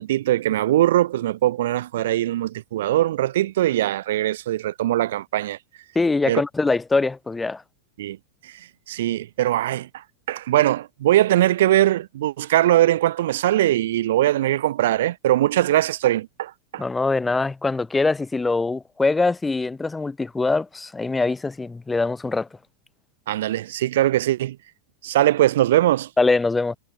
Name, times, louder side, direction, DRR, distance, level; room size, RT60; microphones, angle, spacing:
voice 1, 0.0-5.6 6.3-6.4 8.0-8.2 8.4-16.8 23.3-24.6 25.0-26.1, right 13 dB, 55° right, 2.5 m, -21 dB
voice 2, 5.9-7.6 16.8-22.5 26.2-26.8, left 3 dB, 10° left, 5.2 m, -23 dB
figure-of-eight pair, 90°, 0 cm